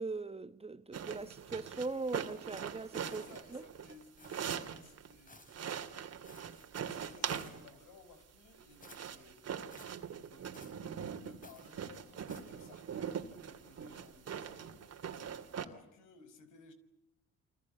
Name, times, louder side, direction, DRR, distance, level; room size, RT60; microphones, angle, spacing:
voice 1, 0.0-3.2 3.5-3.6, right 3 dB, 20° right, 1.1 m, -40 dB
sound 1, 0.9-5.1 5.5-7.8 8.5-15.7, right 8 dB, 55° right, 2.6 m, -42 dB
voice 2, 3.0-5.5 6.8-9.6 10.1-15.1 15.6-16.7, left 4 dB, 85° left, 5.5 m, -59 dB
sound 2, 3.1-3.6 4.2-4.7 5.3-5.7 6.2-6.7 7.2-7.7 8.8-9.2 9.7-10.0 10.5-10.9 11.4-11.8 12.3-12.7, left 2 dB, 25° left, 4.9 m, -58 dB
29.5 x 23.5 x 8.5 m
cardioid pair, 90°, 30 cm